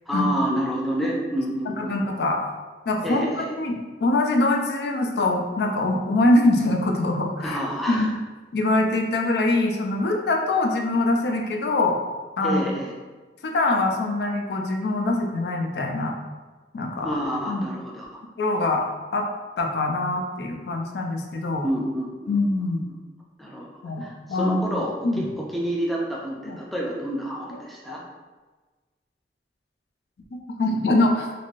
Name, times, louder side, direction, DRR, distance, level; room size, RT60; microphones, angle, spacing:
voice 1, 0.1-2.0 3.0-3.5 7.4-8.1 12.4-12.9 17.0-18.1 21.6-22.4 23.4-23.7 24.0-28.0, equal, ahead, -4 dB, 0.4 m, -28 dB
voice 2, 1.8-2.4 2.9-3.3 3.6-7.6 7.9-8.1 8.5-12.0 12.4-12.6 13.4-16.2 16.7-17.1 17.5-17.6 18.4-18.9 19.1-19.3 19.6-21.7 22.3-22.8 23.8-24.6 25.0-25.2 26.5-26.6 27.9-28.0 30.3-31.3, left 2 dB, 65° left, 2 dB, 0.4 m, -23 dB
3.2 x 2.5 x 2.4 m, 1.3 s
head